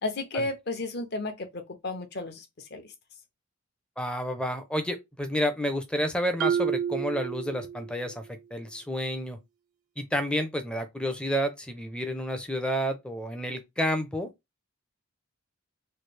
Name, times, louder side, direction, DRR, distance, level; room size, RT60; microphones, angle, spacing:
voice 1, 0.0-2.9, left 2 dB, 50° left, 0.7 m, -33 dB
voice 2, 4.0-8.3 8.5-9.4 10.0-14.3, equal, 5° left, 0.4 m, -30 dB
Marimba xylophone, 6.4-8.2, right 8 dB, 75° right, 0.4 m, -29 dB
3.1 x 2.3 x 3.2 m
head